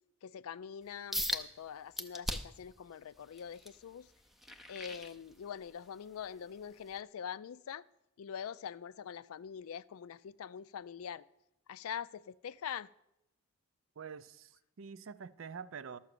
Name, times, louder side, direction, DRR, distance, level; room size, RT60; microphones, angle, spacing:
voice 1, 0.2-4.1 4.7-7.8 8.2-11.2 11.7-12.9, left 8 dB, 85° left, 0.4 m, -44 dB
sound 1, 1.1-1.5 2.0-2.6 3.1-5.7 6.2-6.4 7.0-7.1, equal, ahead, 0.5 m, -39 dB
voice 2, 14.0-16.0, right 6 dB, 65° right, 0.5 m, -46 dB
12.5 x 7.1 x 6.7 m
head